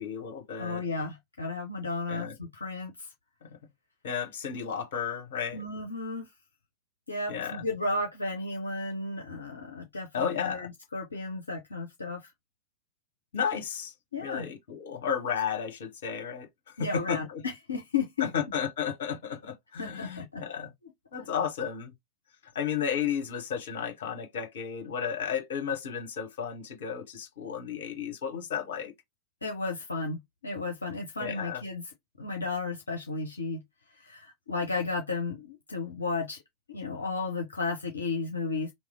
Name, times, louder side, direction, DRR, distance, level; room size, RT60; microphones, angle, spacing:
voice 1, 0.0-0.8 2.1-2.3 4.0-5.6 7.3-7.6 10.1-10.7 13.3-13.9 14.2-16.5 16.8-17.4 18.2-20.7 21.1-21.9 22.5-28.9 31.2-31.6, left 7 dB, 60° left, 0.9 m, -33 dB
voice 2, 0.6-3.1 5.5-6.3 7.1-12.3 14.1-14.5 16.8-18.3 19.8-20.4 21.1-21.3 29.4-31.8 32.2-33.6 33.9-36.4 36.7-38.7, left 3 dB, 75° left, 0.5 m, -33 dB
2.9 x 2.0 x 3.7 m
figure-of-eight pair, 90°, 0 cm